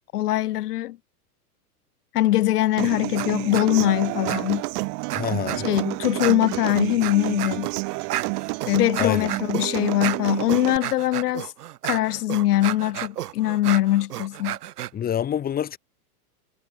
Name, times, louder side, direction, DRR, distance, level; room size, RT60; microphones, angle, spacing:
voice 1, 0.1-1.0 2.1-4.6 5.6-7.7 8.7-11.5 11.9-14.6, left 14 dB, 80° left, 1.1 m, -22 dB
Human voice / Acoustic guitar, 2.8-10.8, right 40 dB or more, 40° right, 3.0 m, -30 dB
sound 1, 2.8-3.3 3.5-3.9 4.3-5.8 6.2-14.9, right 13 dB, 85° right, 1.8 m, -32 dB
voice 2, 5.1-5.7 9.0-9.3 14.9-15.8, left 9 dB, 20° left, 3.5 m, -26 dB
supercardioid pair, 150°, 46 cm